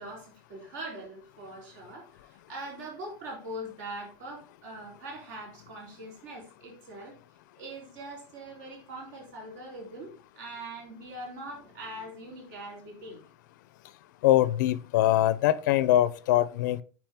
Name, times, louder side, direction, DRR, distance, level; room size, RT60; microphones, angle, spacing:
voice 1, 0.0-7.2 7.6-13.2, right 1 dB, 65° right, 3.7 m, -42 dB
voice 2, 14.2-16.8, left 14 dB, 75° left, 0.6 m, -23 dB
9.2 x 4.7 x 3.6 m
supercardioid pair, 180°, 10 cm